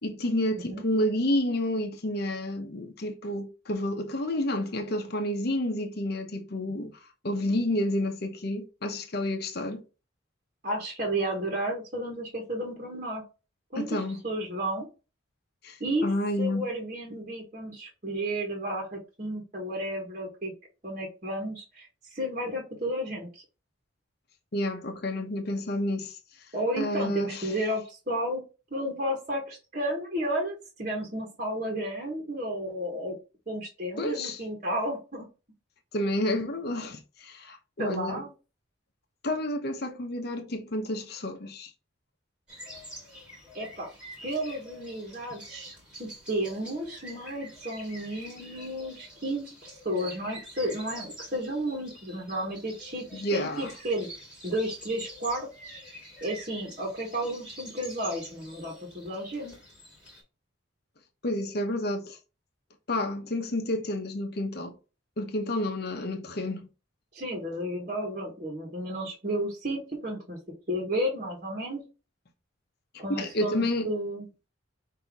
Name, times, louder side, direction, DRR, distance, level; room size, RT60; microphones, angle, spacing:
voice 1, 0.0-7.0 7.2-9.8 13.8-14.2 15.6-16.7 24.5-26.2 26.8-27.5 34.0-34.4 35.9-38.2 39.2-41.7 53.1-53.7 61.2-62.2 62.9-64.8 65.2-66.7 72.9-73.9, left 1 dB, 50° left, 0.8 m, -30 dB
voice 2, 10.6-13.2 13.7-14.9 15.8-16.1 16.4-20.5 20.8-23.4 26.5-28.4 28.7-33.2 33.5-35.3 37.8-38.3 43.5-43.9 44.2-54.1 54.4-55.8 56.2-59.6 67.1-70.4 70.7-71.8 73.0-74.3, right 1 dB, 40° right, 1.3 m, -32 dB
sound 1, 42.5-60.2, equal, 5° right, 1.8 m, -47 dB
5.6 x 2.7 x 3.5 m
head